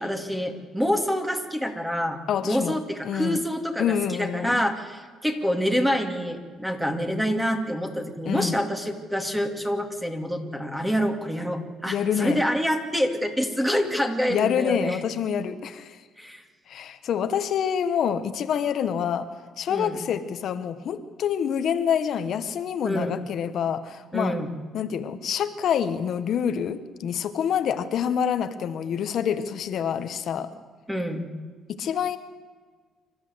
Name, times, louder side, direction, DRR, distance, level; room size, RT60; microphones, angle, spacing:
voice 1, 0.0-15.0 16.2-16.4 19.7-20.0 22.8-23.1 24.1-24.5 30.9-31.3, equal, 5° right, 5 dB, 2.6 m, -27 dB
voice 2, 2.3-2.8 3.0-3.4 3.8-4.6 8.3-8.6 11.8-12.4 14.3-16.0 16.7-19.3 19.6-24.4 24.7-30.5 31.7-32.2, left 8 dB, 60° left, 11 dB, 1.3 m, -27 dB
26.5 x 13.5 x 8.1 m, 1.5 s
cardioid pair, 115°, 0 cm